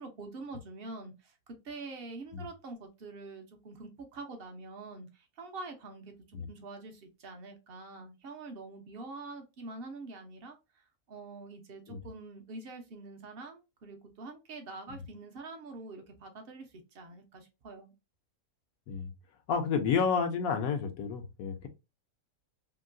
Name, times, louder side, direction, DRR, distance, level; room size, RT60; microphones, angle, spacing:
voice 1, 0.0-10.6 11.1-17.9, right 3 dB, 55° right, 0.7 m, -45 dB
voice 2, 19.5-21.7, left 6 dB, 75° left, 1.0 m, -30 dB
2.9 x 2.7 x 2.5 m
omnidirectional pair, 1.5 m